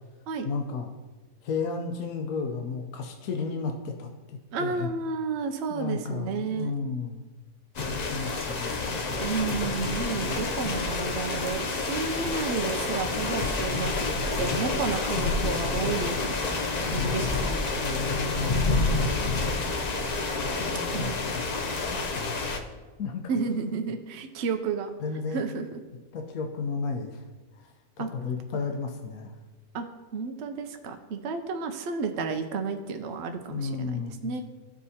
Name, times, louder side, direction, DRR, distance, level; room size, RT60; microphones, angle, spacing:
voice 1, 0.4-0.9 1.4-4.9 5.7-7.2 7.9-8.9 17.8-18.5 20.6-21.4 21.9-22.4 23.0-23.2 23.6-23.8 25.0-25.4 26.1-27.2 27.6-29.3 33.5-34.4, left 4 dB, 80° left, 3 dB, 1.2 m, -33 dB
voice 2, 4.5-6.7 9.2-14.1 14.4-16.4 16.8-18.0 20.9-21.2 23.3-24.9 25.3-25.8 28.0-28.1 29.7-29.9 30.1-34.4, right 4 dB, 65° right, 6 dB, 0.7 m, -31 dB
sound 1, 7.7-22.6, left 3 dB, 65° left, 0.4 m, -28 dB
13.5 x 4.7 x 2.8 m, 1.3 s
omnidirectional pair, 1.5 m